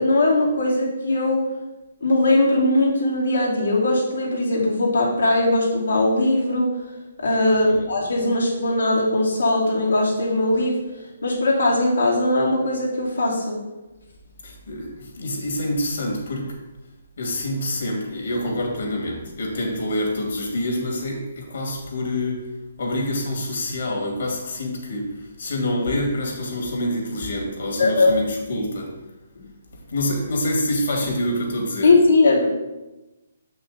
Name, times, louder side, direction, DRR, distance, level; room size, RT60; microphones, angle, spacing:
voice 1, 0.0-1.4 2.0-6.7 7.2-10.7 11.2-13.6 27.8-28.1 31.8-32.4, left 2 dB, 90° left, -5 dB, 2.6 m, -19 dB
voice 2, 14.4-16.6 17.2-22.5 22.8-29.0 29.7-31.9, left 1 dB, 70° left, 0 dB, 2.6 m, -26 dB
6.8 x 5.8 x 4.1 m, 1.0 s
hypercardioid pair, 145°, 0 cm